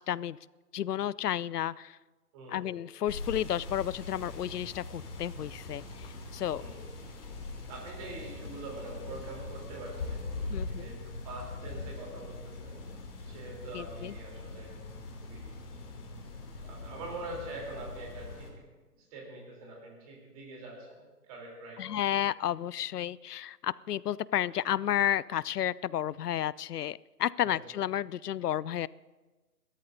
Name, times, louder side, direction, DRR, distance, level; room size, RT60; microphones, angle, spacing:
voice 1, 0.1-0.4 0.7-1.9 2.5-5.8 6.3-6.6 10.5-10.9 13.7-14.1 21.8-28.9, left 11 dB, 80° left, 21 dB, 0.5 m, -32 dB
voice 2, 2.3-2.7 6.5-6.8 7.7-12.8 13.2-14.8 15.2-15.6 16.6-18.5 19.1-22.2 27.4-27.7, right 2 dB, 25° right, -1 dB, 3.5 m, -44 dB
sound 1, 3.1-18.5, left 3 dB, 35° left, 2.8 m, -42 dB
sound 2, 3.5-10.9, right 1 dB, ahead, 4.8 m, -56 dB
28.5 x 13.5 x 2.7 m, 1.2 s
hypercardioid pair, 160°, 47 cm